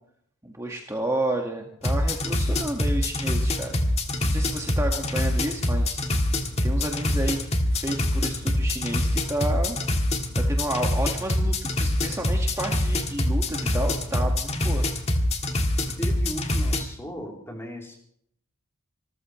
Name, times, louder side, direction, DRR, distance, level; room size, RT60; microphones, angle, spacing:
voice 1, 0.4-3.8 4.2-6.0 6.6-9.8 10.3-14.8, right 1 dB, 15° right, 1 dB, 1.7 m, -31 dB
sound 1, 1.8-16.8, left 1 dB, 30° left, 1.7 m, -25 dB
voice 2, 16.0-18.0, equal, 10° left, 0 dB, 3.3 m, -36 dB
26.0 x 14.5 x 3.1 m, 0.68 s
head